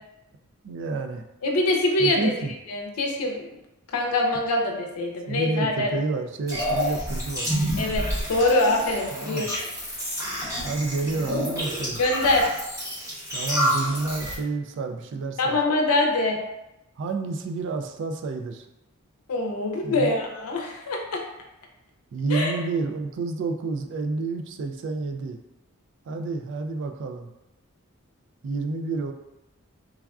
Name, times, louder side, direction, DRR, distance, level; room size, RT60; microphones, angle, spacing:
voice 1, 0.6-1.2 2.0-2.5 5.3-7.7 9.1-9.5 10.6-12.0 13.3-15.6 17.0-18.7 19.8-20.1 22.1-25.4 26.1-27.3 28.4-29.1, right 3 dB, 55° right, 6 dB, 0.3 m, -29 dB
voice 2, 1.4-2.3 2.7-3.5 3.9-5.9 7.8-9.5 12.0-12.5 15.4-16.4 19.3-21.2 22.3-22.5, left 2 dB, 85° left, 1 dB, 0.5 m, -24 dB
sound 1, 6.5-14.3, equal, 15° right, 0.8 m, -29 dB
3.3 x 2.3 x 2.3 m, 0.93 s
head